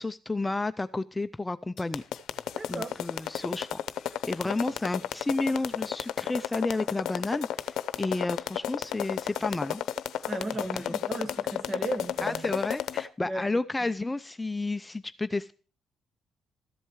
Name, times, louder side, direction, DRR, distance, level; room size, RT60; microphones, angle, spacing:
voice 1, 0.0-2.0 2.7-9.8 10.7-10.9 12.2-15.5, left 2 dB, 15° left, 0.4 m, -31 dB
sound 1, 1.8-13.0, left 11 dB, 75° left, 0.7 m, -32 dB
voice 2, 2.5-3.0 4.2-4.4 10.2-12.5 13.2-13.6, right 2 dB, 35° right, 1.6 m, -36 dB
14.0 x 7.8 x 4.6 m
cardioid pair, 90°, 0 cm